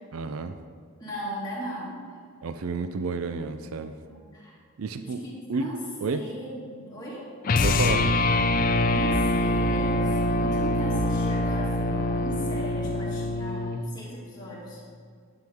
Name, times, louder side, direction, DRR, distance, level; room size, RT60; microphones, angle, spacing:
voice 1, 0.1-0.5 2.4-3.9 4.8-5.2 5.5-5.7 6.0-6.3 7.6-8.0, right 4 dB, 70° right, 9 dB, 0.4 m, -30 dB
voice 2, 1.0-2.0 4.0-4.6 5.0-7.3 8.9-14.9, equal, 20° left, -7 dB, 2.3 m, -38 dB
sound 1, 7.4-13.8, left 2 dB, 40° left, 0.4 m, -24 dB
10.5 x 7.5 x 3.5 m, 2.1 s
head